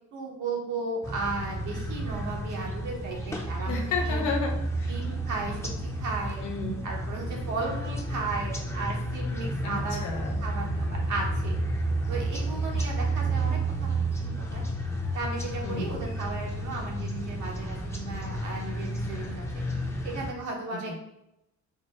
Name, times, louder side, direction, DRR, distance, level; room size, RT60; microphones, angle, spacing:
voice 1, 0.1-3.8 4.0-4.2 4.9-6.4 6.8-10.0 10.4-11.6 12.1-14.0 14.2-14.6 15.1-19.4 20.0-21.0, right 3 dB, 75° right, -1 dB, 1.2 m, -35 dB
sound 1, 1.0-20.3, right 1 dB, 10° left, 0.6 m, -31 dB
voice 2, 3.6-4.9 6.4-6.8 9.6-10.4 15.6-16.0 20.9-21.0, left 4 dB, 90° left, 1 dB, 0.9 m, -32 dB
4.3 x 2.1 x 4.1 m, 0.85 s
cardioid pair, 90°, 30 cm